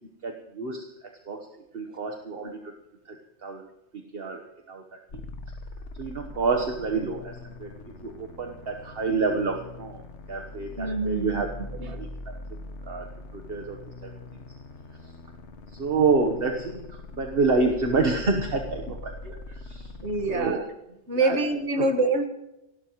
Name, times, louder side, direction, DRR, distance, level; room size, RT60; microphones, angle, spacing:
voice 1, 0.2-1.5 1.7-2.7 3.0-3.2 3.4-3.7 3.9-5.0 6.0-10.0 10.3-11.5 11.9-12.1 12.8-13.1 13.3-14.4 15.7-19.9 20.3-20.6 21.1-21.4 21.8-21.9, right 4 dB, 55° right, 3 dB, 1.4 m, -28 dB
sound 1, 5.1-20.5, left 2 dB, 80° left, 1.5 m, -42 dB
voice 2, 10.8-11.4 11.8-12.0 20.0-20.6 21.1-22.3, right 2 dB, 75° right, 5 dB, 1.9 m, -26 dB
29.0 x 12.0 x 3.1 m, 0.90 s
omnidirectional pair, 1.2 m